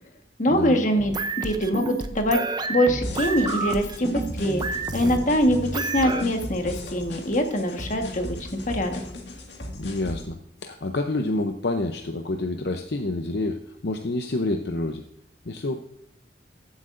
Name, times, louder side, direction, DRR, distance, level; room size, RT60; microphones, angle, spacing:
voice 1, 0.4-2.4 2.7-4.6 4.9-8.4 8.7-9.0, equal, 45° left, 5 dB, 1.4 m, -23 dB
sound 1, 1.0-6.2, right 3 dB, 25° right, 0.6 m, -30 dB
sound 2, 3.0-10.3, left 1 dB, 85° left, 1.9 m, -37 dB
voice 2, 9.8-15.0 15.5-15.8, left 2 dB, 65° left, 5 dB, 0.7 m, -28 dB
15.0 x 8.1 x 2.6 m, 0.77 s
head